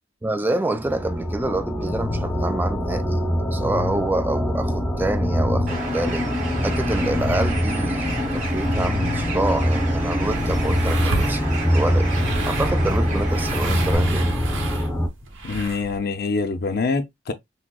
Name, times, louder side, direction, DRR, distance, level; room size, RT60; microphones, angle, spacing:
voice 1, 0.2-3.2 3.5-6.3 6.6-11.5 11.7-12.1 12.4-14.3, right 2 dB, 10° right, 0.3 m, -27 dB
sound 1, 0.8-15.1, equal, 5° left, 0.9 m, -23 dB
Bird, 5.7-14.0, right 3 dB, 45° right, 2.0 m, -33 dB
sound 2, 9.7-16.0, right 2 dB, 80° right, 0.9 m, -31 dB
voice 2, 15.4-17.3, left 4 dB, 55° left, 0.5 m, -25 dB
6.0 x 2.1 x 2.3 m
head